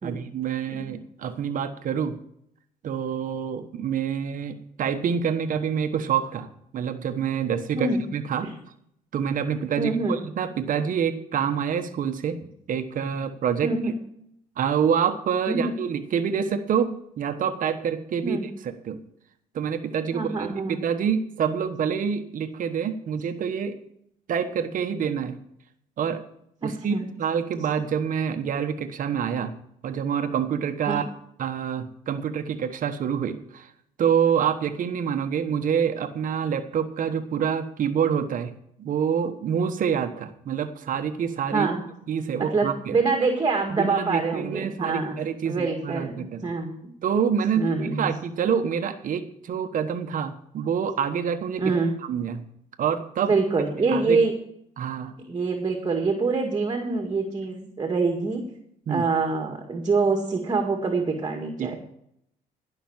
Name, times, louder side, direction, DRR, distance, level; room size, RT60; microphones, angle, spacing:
voice 1, 0.0-2.2 2.8-6.5 6.7-8.5 9.1-12.4 12.7-13.7 14.6-18.4 18.8-19.0 19.5-23.8 24.3-25.4 26.0-26.2 26.6-29.6 29.8-31.1 31.4-33.7 34.0-41.7 42.1-43.0 43.7-46.5 47.0-51.7 52.0-52.4 52.8-53.3 53.8-54.2 54.8-55.1 58.9-59.1 61.6-61.8, right 7 dB, 50° right, 8 dB, 1.2 m, -27 dB
voice 2, 9.8-10.2 13.6-13.9 15.5-15.8 18.2-18.4 20.1-20.8 26.6-27.1 30.9-31.0 41.5-41.8 42.4-45.2 45.5-46.7 47.6-48.1 51.6-51.9 53.3-54.3 55.3-58.4 58.9-61.8, right 4 dB, 25° right, 3 dB, 2.0 m, -25 dB
16.5 x 6.0 x 7.3 m, 0.73 s
cardioid pair, 110°, 17 cm